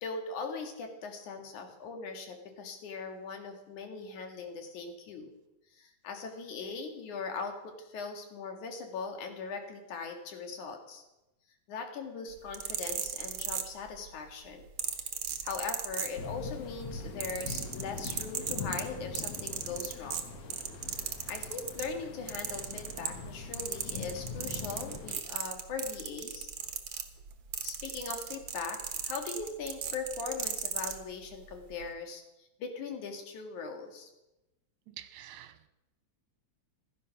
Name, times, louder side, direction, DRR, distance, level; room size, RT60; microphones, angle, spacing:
voice 1, 0.0-5.3 5.7-11.0 11.7-14.6 15.0-15.1 15.4-20.2 20.9-26.5 27.6-34.1, left 4 dB, 85° left, 4 dB, 3.4 m, -40 dB
sound 1, 12.4-14.1 14.8-16.5 16.9-21.9 22.3-23.3 23.5-31.0 31.7-31.9, right 9 dB, 55° right, 1.9 m, -36 dB
sound 2, 16.1-25.1, left 4 dB, 65° left, 2.5 m, -42 dB
voice 2, 35.0-35.7, right 12 dB, 75° right, 11 dB, 2.2 m, -47 dB
16.0 x 13.0 x 5.8 m, 0.98 s
omnidirectional pair, 3.4 m